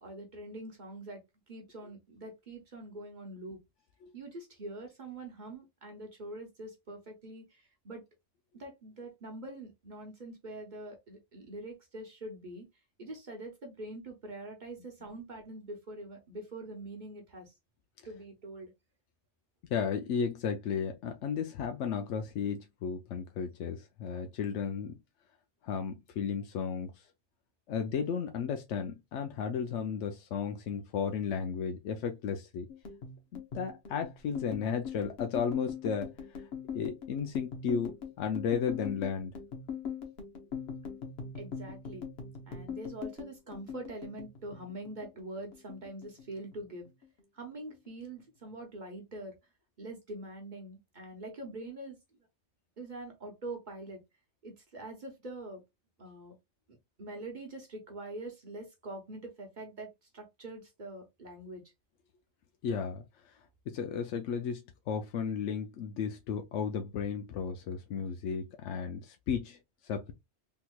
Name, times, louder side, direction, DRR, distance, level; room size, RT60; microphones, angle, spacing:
voice 1, 0.0-1.2 1.5-3.6 4.1-8.0 8.5-12.7 13.0-17.5 18.0-18.7 41.3-42.1 42.5-46.9 47.3-49.4 49.8-52.0 52.8-54.0 54.4-55.6 56.0-56.4 57.0-61.6, right 2 dB, 45° right, 1.1 m, -44 dB
voice 2, 19.7-24.9 25.6-26.9 27.7-32.7 33.3-36.1 36.7-39.3 62.6-63.0 63.7-64.6 64.9-69.6 69.8-70.1, left 6 dB, 90° left, 0.9 m, -34 dB
sound 1, 32.7-45.3 45.5-46.6 46.9-47.2 47.5-48.2, left 6 dB, 65° left, 1.1 m, -41 dB
3.6 x 2.9 x 2.2 m
omnidirectional pair, 1.2 m